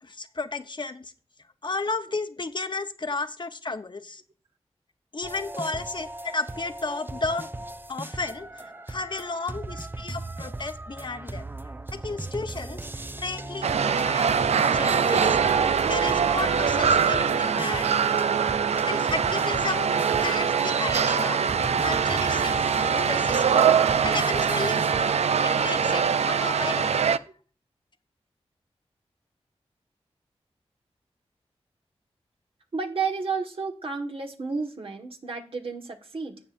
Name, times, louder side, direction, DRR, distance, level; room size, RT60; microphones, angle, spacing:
voice 1, 0.0-1.1 1.6-4.2 5.1-7.5 7.9-11.5 12.0-14.3 14.7-15.4 15.8-17.9 18.9-21.4 21.8-23.7 24.0-24.9 25.4-27.1, left 3 dB, 45° left, 8 dB, 0.9 m, -33 dB
sound 1, 5.2-25.2, right 2 dB, 20° right, 0.5 m, -38 dB
sound 2, 13.6-27.2, right 7 dB, 85° right, 0.4 m, -23 dB
voice 2, 32.7-36.4, right 4 dB, 60° right, 3 dB, 1.5 m, -31 dB
13.5 x 8.6 x 2.6 m, 0.39 s
cardioid pair, 60°, 11 cm